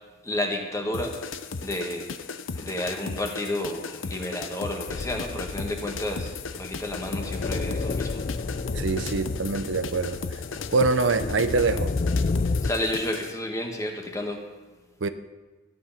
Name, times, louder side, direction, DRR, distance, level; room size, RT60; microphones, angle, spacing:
voice 1, 0.2-2.1 2.5-8.2 12.6-14.4, left 1 dB, 15° left, 2 dB, 1.6 m, -31 dB
sound 1, 0.9-13.3, left 4 dB, 90° left, 0.7 m, -36 dB
sound 2, 4.9-12.7, left 3 dB, 40° left, 0.4 m, -31 dB
voice 2, 8.8-10.2 10.7-11.9 15.0-15.1, right 3 dB, 70° right, 10 dB, 0.7 m, -24 dB
14.0 x 9.6 x 5.8 m, 1.2 s
head